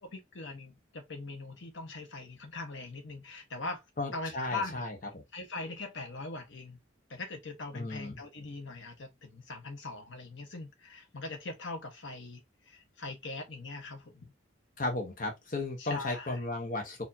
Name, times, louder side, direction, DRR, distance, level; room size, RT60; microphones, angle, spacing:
voice 1, 0.0-3.8 4.1-4.9 5.3-6.8 7.1-14.3 15.8-16.4, left 3 dB, 75° left, 1.1 m, -41 dB
voice 2, 4.0-5.2 7.7-8.2 14.8-17.0, left 2 dB, 45° left, 0.9 m, -35 dB
4.4 x 2.7 x 2.7 m
head